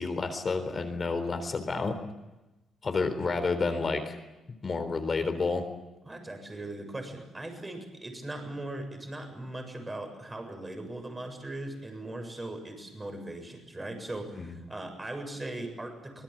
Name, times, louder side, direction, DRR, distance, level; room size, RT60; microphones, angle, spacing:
voice 1, 0.0-2.0 2.8-4.2 4.6-5.7 14.3-14.6, left 4 dB, 35° left, 8 dB, 3.8 m, -30 dB
voice 2, 6.1-16.2, right 1 dB, 20° right, 5 dB, 7.5 m, -39 dB
25.5 x 20.0 x 8.9 m, 1.0 s
cardioid pair, 90°, 0 cm